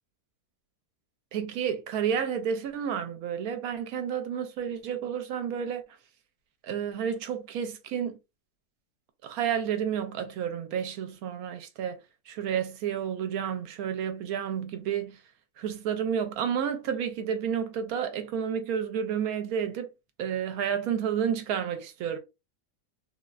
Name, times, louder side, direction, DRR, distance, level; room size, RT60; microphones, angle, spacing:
voice 1, 1.3-5.8 6.6-8.2 9.2-15.2 15.6-19.9 20.2-22.2, right 8 dB, 75° right, 1.0 m, -31 dB
3.7 x 2.0 x 2.4 m
omnidirectional pair, 1.6 m